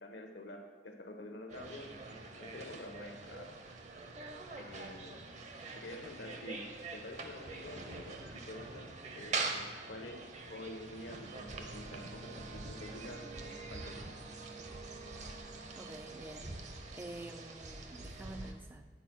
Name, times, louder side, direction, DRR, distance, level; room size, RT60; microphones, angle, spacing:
voice 1, 0.0-3.6 4.6-5.2 5.8-14.1, left 1 dB, 75° left, 4 dB, 1.0 m, -48 dB
sound 1, 1.5-18.5, right 3 dB, 40° right, 0.7 m, -44 dB
Wind instrument woodwind instrument, 11.3-16.1, right 4 dB, 80° right, 0.5 m, -56 dB
voice 2, 15.8-16.6 16.9-18.9, right 1 dB, 10° right, 6 dB, 0.3 m, -48 dB
9.3 x 4.4 x 6.1 m, 1.5 s
head